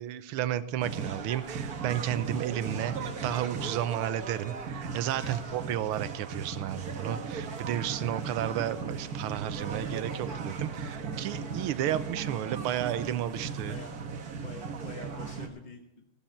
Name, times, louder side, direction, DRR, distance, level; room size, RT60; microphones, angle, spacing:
voice 1, 0.0-13.7, right 11 dB, 80° right, 13 dB, 1.6 m, -32 dB
sound 1, 0.8-15.5, right 5 dB, 50° right, 1.6 m, -37 dB
voice 2, 5.2-5.7 13.2-14.0 14.3-16.0, left 3 dB, 35° left, 4 dB, 0.7 m, -47 dB
15.0 x 12.5 x 4.4 m, 0.81 s
omnidirectional pair, 2.4 m